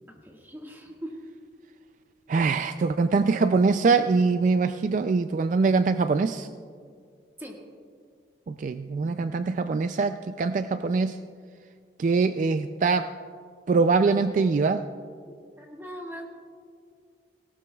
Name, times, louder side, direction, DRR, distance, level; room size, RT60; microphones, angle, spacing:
voice 1, 0.3-1.1 7.4-7.5 9.0-9.1 15.6-16.3, equal, 10° right, 0 dB, 1.7 m, -40 dB
voice 2, 2.3-6.5 8.5-11.2 12.0-13.1 13.7-14.9, right 4 dB, 45° right, 10 dB, 0.3 m, -23 dB
18.5 x 17.0 x 2.3 m, 2.2 s
head